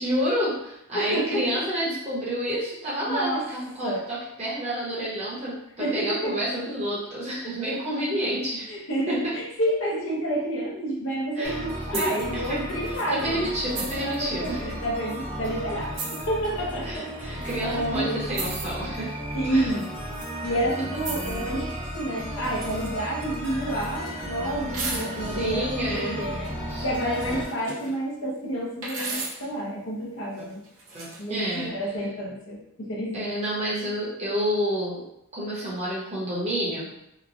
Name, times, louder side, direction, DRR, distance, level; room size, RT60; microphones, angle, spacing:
voice 1, 0.0-8.8 9.1-9.3 11.3-11.6 11.9-14.6 16.8-19.1 19.5-19.7 25.1-26.2 26.7-26.9 27.3-27.4 30.9-31.7 33.1-35.0 35.3-36.9, equal, 30° right, -7 dB, 0.9 m, -29 dB
voice 2, 0.9-1.6 3.1-3.4 3.8-4.0 5.8-6.3 8.7-13.4 14.0-18.2 19.3-19.9 20.4-26.5 26.8-30.6 31.2-33.3, right 1 dB, 60° left, -3 dB, 0.7 m, -29 dB
sound 1, 11.4-27.4, equal, 10° left, 0.6 m, -34 dB
sound 2, 11.9-12.2 12.9-13.0 13.8-14.2 15.1-15.2 16.0-16.2 17.4-17.6 18.3-18.7 19.8-20.3 21.0-21.5 22.6-22.9 23.2-24.1 24.7-25.5 26.8-27.9 28.8-29.5 30.6-31.2, right 3 dB, 70° right, 0.7 m, -35 dB
3.0 x 2.1 x 2.5 m, 0.82 s
head